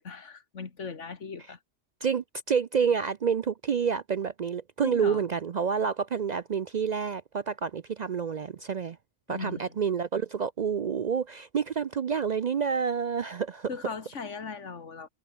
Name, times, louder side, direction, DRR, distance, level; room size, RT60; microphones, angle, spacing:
voice 1, 0.0-1.6 4.8-5.2 9.3-9.8 13.7-15.1, left 5 dB, 85° left, 2.2 m, -39 dB
voice 2, 2.0-9.0 9.3-13.7, right 6 dB, 55° right, 0.5 m, -28 dB
omnidirectional pair, 1.2 m